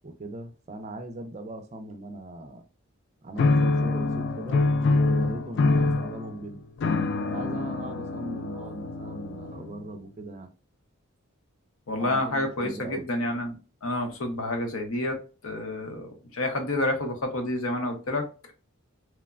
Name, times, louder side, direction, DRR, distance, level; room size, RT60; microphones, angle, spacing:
voice 1, 0.0-2.6 3.2-6.6 7.3-10.5 12.0-13.1, right 2 dB, 30° right, 0.4 m, -40 dB
sound 1, 3.4-9.8, left 3 dB, 50° left, 0.3 m, -25 dB
voice 2, 11.9-13.6 13.8-15.2 15.4-18.3, left 1 dB, 70° left, 0.8 m, -29 dB
3.1 x 2.1 x 2.3 m
head